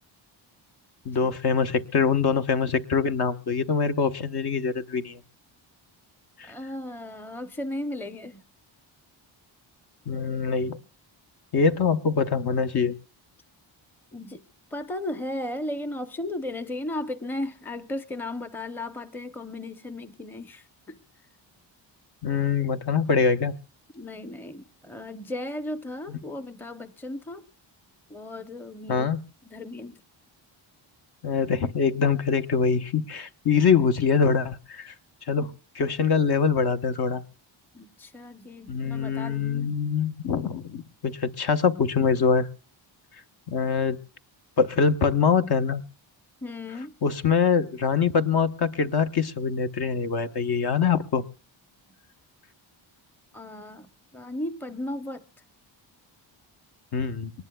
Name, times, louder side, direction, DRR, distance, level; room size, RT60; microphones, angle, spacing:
voice 1, 1.0-5.2 6.4-6.5 10.1-10.8 11.5-12.9 22.2-23.5 28.9-29.2 31.2-34.9 35.3-35.5 35.7-37.2 38.7-42.5 43.5-44.0 44.6-45.8 47.0-51.2 56.9-57.3, left 6 dB, 50° left, 1.0 m, -24 dB
voice 2, 6.5-8.4 14.1-14.4 14.7-21.0 23.9-27.5 28.1-29.1 29.4-30.0 35.4-35.5 37.7-39.8 46.4-46.9 53.3-55.2, left 1 dB, 5° left, 0.7 m, -35 dB
23.5 x 19.0 x 2.3 m
wide cardioid pair, 130°, 48 cm